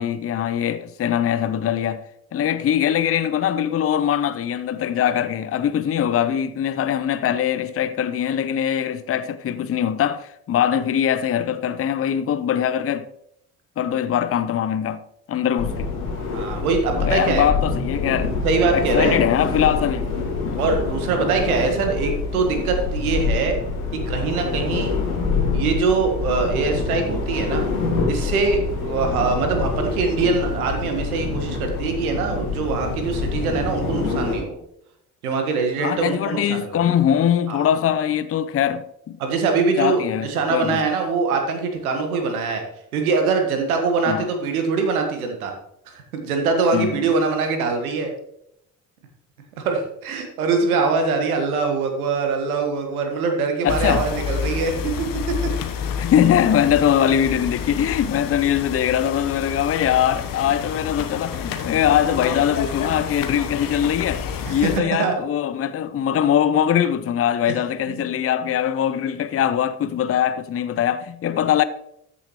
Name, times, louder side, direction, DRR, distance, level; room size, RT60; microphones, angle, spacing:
voice 1, 0.0-2.0 2.3-13.1 13.8-15.0 15.3-15.9 16.9-18.3 18.7-20.1 20.4-20.6 35.8-39.2 39.8-40.8 44.1-44.3 46.7-47.0 53.6-54.1 56.0-64.2 64.5-71.6, left 9 dB, 35° left, 0.7 m, -22 dB
sound 1, 15.6-34.4, left 4 dB, 80° left, 2.3 m, -26 dB
voice 2, 16.3-17.5 18.4-19.2 20.6-23.5 23.9-24.9 25.5-27.6 28.1-34.5 35.2-36.8 37.5-37.7 39.2-42.6 42.9-45.5 45.9-48.1 49.6-55.5 64.5-64.6 65.0-65.1 67.5-67.6 67.9-68.0, right 4 dB, 80° right, 1.4 m, -23 dB
sound 2, 53.7-64.8, left 7 dB, 50° left, 1.1 m, -29 dB
13.5 x 7.0 x 3.0 m
figure-of-eight pair, 45°, 43 cm